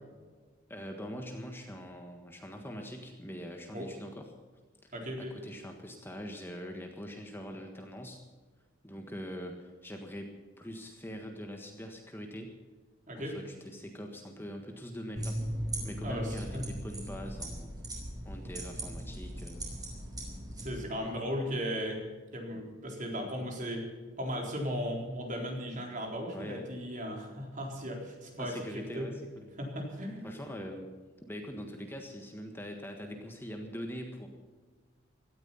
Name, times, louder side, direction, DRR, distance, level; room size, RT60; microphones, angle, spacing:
voice 1, 0.7-4.3 4.8-8.2 8.8-12.6 13.2-15.5 15.8-17.7 18.2-19.6 20.9-21.0 22.5-22.6 26.3-26.7 28.4-29.5 30.2-30.9 31.2-34.3, equal, 10° left, 3 dB, 1.5 m, -43 dB
voice 2, 4.9-5.3 13.1-13.4 16.0-16.6 20.6-22.0 22.3-23.9 24.2-29.1 29.6-30.4, equal, 40° right, 1 dB, 4.1 m, -36 dB
sound 1, 15.2-20.7, right 1 dB, 20° right, 5.0 m, -38 dB
17.5 x 13.5 x 5.7 m, 1.4 s
head